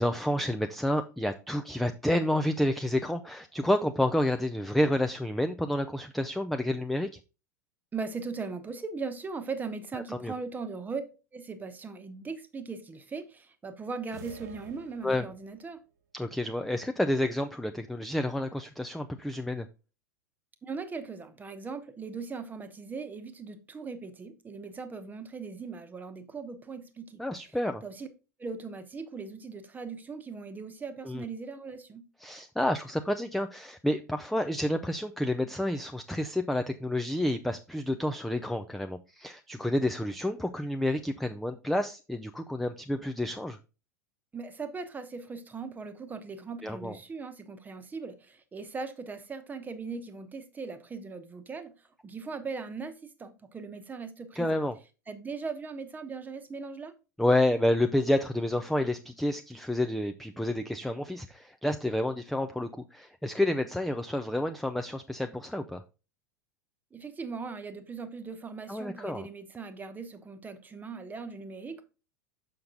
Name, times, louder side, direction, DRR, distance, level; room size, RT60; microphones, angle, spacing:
voice 1, 0.0-7.1 10.1-10.3 15.0-15.3 16.1-19.7 27.2-27.8 31.1-31.2 32.2-43.6 46.6-47.0 54.4-54.7 57.2-65.8 68.7-69.3, left 1 dB, ahead, 0.4 m, -29 dB
voice 2, 7.9-11.0 11.3-15.8 20.6-27.2 27.8-28.1 28.4-32.0 44.3-51.7 52.0-54.6 55.1-56.9 66.9-71.8, right 4 dB, 20° right, 1.0 m, -39 dB
sound 1, 14.1-15.7, right 6 dB, 65° right, 0.9 m, -49 dB
6.5 x 5.7 x 3.8 m
figure-of-eight pair, 85°, 10 cm